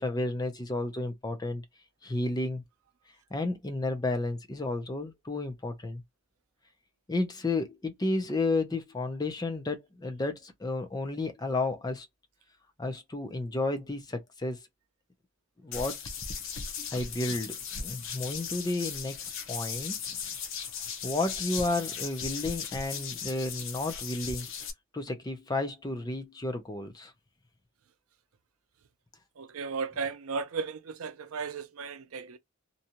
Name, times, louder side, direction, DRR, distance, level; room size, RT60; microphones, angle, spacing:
voice 1, 0.0-1.6 2.0-2.6 3.3-6.0 7.1-12.1 12.8-14.7 15.6-16.0 16.9-20.2 21.0-24.5 24.9-27.1, left 2 dB, 20° left, 0.4 m, -32 dB
sound 1, 15.7-24.7, left 6 dB, 60° left, 0.7 m, -37 dB
voice 2, 29.4-32.4, right 5 dB, 75° right, 0.5 m, -35 dB
2.6 x 2.3 x 2.8 m
head